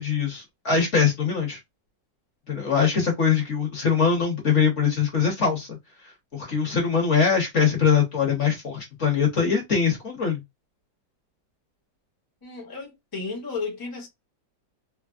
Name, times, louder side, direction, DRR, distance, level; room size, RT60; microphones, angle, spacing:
voice 1, 0.0-1.6 2.5-5.8 6.3-10.4, left 6 dB, 50° left, 1.0 m, -22 dB
voice 2, 12.4-14.1, left 4 dB, 20° left, 0.6 m, -33 dB
3.3 x 2.0 x 2.4 m
omnidirectional pair, 2.0 m